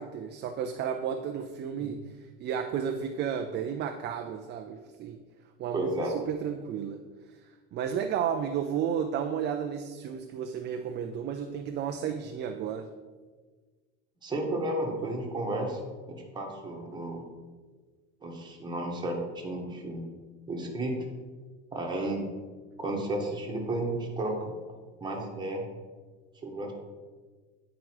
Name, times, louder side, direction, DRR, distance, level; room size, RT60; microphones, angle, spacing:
voice 1, 0.0-5.2 5.6-7.0 7.3-12.9, right 8 dB, 35° right, 6 dB, 0.5 m, -33 dB
voice 2, 5.7-6.1 14.2-15.8 16.1-17.2 18.2-20.1 20.5-20.9 21.7-22.3 22.8-24.5 25.0-25.7 26.4-26.7, right 1 dB, 15° right, -1 dB, 1.7 m, -32 dB
9.5 x 5.0 x 4.7 m, 1.4 s
supercardioid pair, 135°, 30 cm